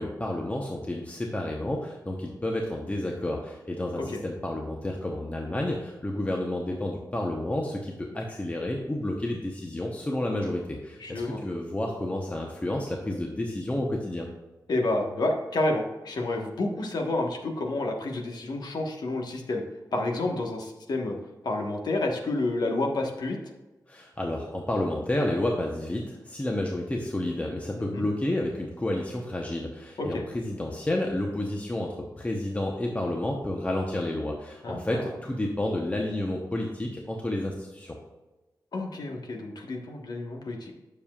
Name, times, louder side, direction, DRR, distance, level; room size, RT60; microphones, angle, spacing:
voice 1, 0.0-14.3 23.9-38.0, left 1 dB, 20° left, 0 dB, 0.9 m, -30 dB
voice 2, 11.0-11.4 14.7-19.6 19.9-21.2 21.4-23.4 27.8-28.1 30.0-30.2 34.6-35.0 38.7-40.7, left 2 dB, 70° left, 2 dB, 1.3 m, -29 dB
9.9 x 6.9 x 2.4 m, 1.1 s
wide cardioid pair, 110°, 7 cm